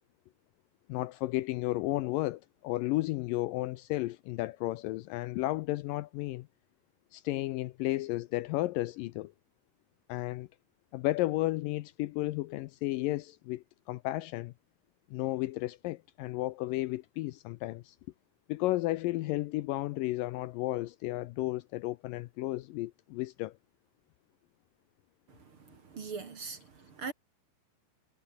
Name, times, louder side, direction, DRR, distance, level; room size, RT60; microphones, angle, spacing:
voice 1, 0.9-6.5 7.1-9.3 10.1-10.5 10.9-14.5 15.1-18.0 18.5-23.5, left 18 dB, 80° left, 2.1 m, -33 dB
voice 2, 25.3-27.1, right 5 dB, 40° right, 2.4 m, -42 dB
omnidirectional pair, 4.3 m